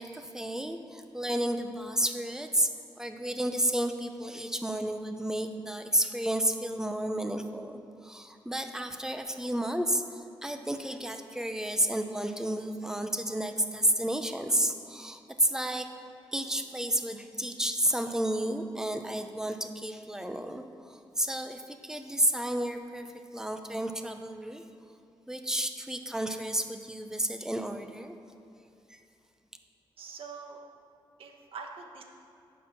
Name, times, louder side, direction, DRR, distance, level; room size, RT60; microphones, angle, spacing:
voice 1, 0.0-15.9 16.3-24.6 25.3-28.2 28.9-29.0, right 1 dB, 5° right, 6 dB, 0.6 m, -31 dB
voice 2, 30.0-30.6 31.2-32.0, right 5 dB, 80° right, 3 dB, 1.0 m, -44 dB
9.7 x 5.6 x 6.0 m, 2.6 s
wide cardioid pair, 120°, 9 cm